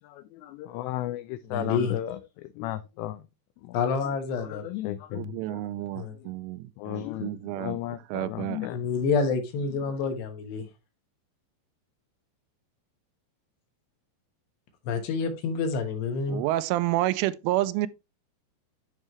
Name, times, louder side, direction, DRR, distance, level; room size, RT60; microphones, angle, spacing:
voice 1, 0.4-2.2 2.6-3.2 4.5-5.6 6.8-7.3 7.6-8.8, left 14 dB, 85° left, 2.5 m, -34 dB
voice 2, 1.5-2.0 3.7-4.6 6.0-6.1 8.7-10.6 14.9-16.4, left 5 dB, 70° left, 3.1 m, -28 dB
voice 3, 5.1-7.8 8.1-8.7 16.3-17.9, right 16 dB, 85° right, 3.1 m, -29 dB
11.0 x 5.4 x 3.1 m
omnidirectional pair, 5.5 m